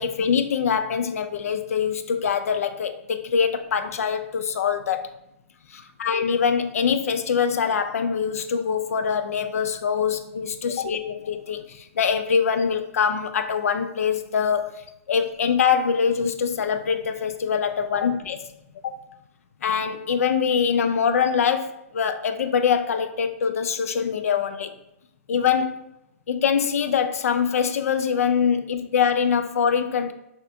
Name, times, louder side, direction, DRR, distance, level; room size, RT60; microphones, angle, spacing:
voice 1, 0.0-5.1 5.7-14.7 15.1-18.4 18.8-19.0 19.6-24.7 25.3-25.8 26.3-30.1, left 7 dB, 80° left, 9 dB, 0.4 m, -24 dB
2.7 x 2.5 x 3.3 m, 0.86 s
hypercardioid pair, 155°, 8 cm